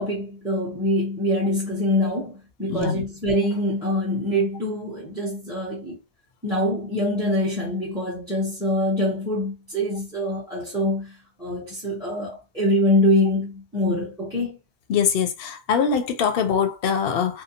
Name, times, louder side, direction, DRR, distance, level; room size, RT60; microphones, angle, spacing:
voice 1, 0.0-6.0 6.4-11.1 11.4-14.6, left 1 dB, 5° right, 0.7 m, -24 dB
voice 2, 2.7-3.0 14.9-17.4, left 7 dB, 60° left, 0.7 m, -23 dB
2.7 x 2.0 x 2.7 m
omnidirectional pair, 1.2 m